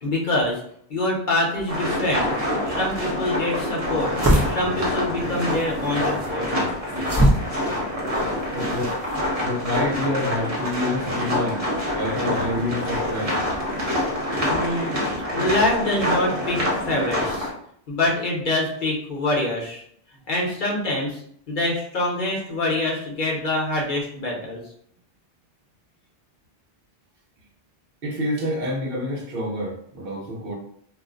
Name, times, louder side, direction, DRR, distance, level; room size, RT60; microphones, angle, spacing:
voice 1, 0.0-0.6 0.9-2.3 2.7-4.1 4.5-6.5 14.5-15.0 15.3-17.5 17.9-19.8 20.3-21.2 21.5-24.6, left 1 dB, 55° left, -2 dB, 0.9 m, -25 dB
sound 1, 1.7-17.5, left 1 dB, 40° right, 0.9 m, -26 dB
sound 2, 2.9-9.2, equal, 20° right, 0.4 m, -26 dB
sound 3, 4.2-11.0, right 3 dB, 25° left, 0.8 m, -48 dB
voice 2, 8.5-9.0 9.4-11.7 11.9-13.4 28.0-30.6, left 1 dB, 65° right, 0 dB, 0.9 m, -27 dB
2.5 x 2.1 x 3.6 m, 0.66 s
omnidirectional pair, 1.1 m